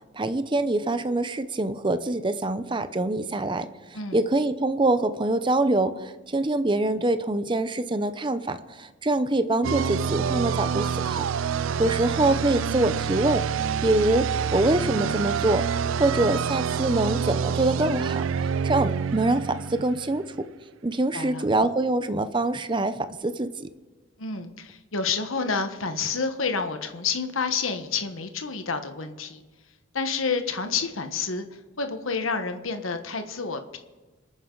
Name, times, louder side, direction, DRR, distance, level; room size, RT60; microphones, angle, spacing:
voice 1, 0.1-3.7 4.1-11.2 11.8-13.4 13.8-15.6 16.0-18.2 18.6-20.3 20.8-23.7, right 2 dB, 25° right, 11 dB, 0.7 m, -24 dB
sound 1, 9.6-20.3, right 7 dB, 75° right, 0.4 m, -27 dB
voice 2, 21.1-21.4 24.2-29.4 29.9-33.8, left 5 dB, 80° left, 7 dB, 1.3 m, -29 dB
26.5 x 9.6 x 3.9 m, 1.3 s
head